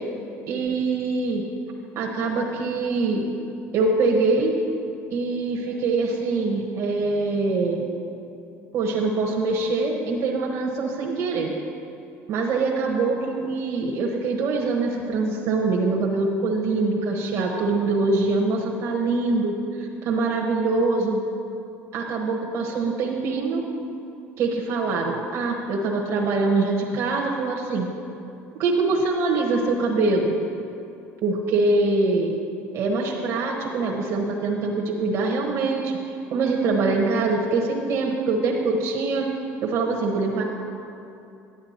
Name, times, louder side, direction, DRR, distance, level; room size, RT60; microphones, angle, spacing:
voice 1, 0.5-1.4 1.9-3.2 3.7-4.5 5.1-7.9 8.7-11.5 12.3-21.2 21.9-23.6 24.4-27.9 28.6-30.3 31.2-32.3 32.7-36.0 36.3-39.3 39.6-40.4, right 3 dB, 55° right, -2 dB, 1.2 m, -24 dB
11.0 x 8.7 x 4.3 m, 2.7 s
supercardioid pair, 95°, 6 cm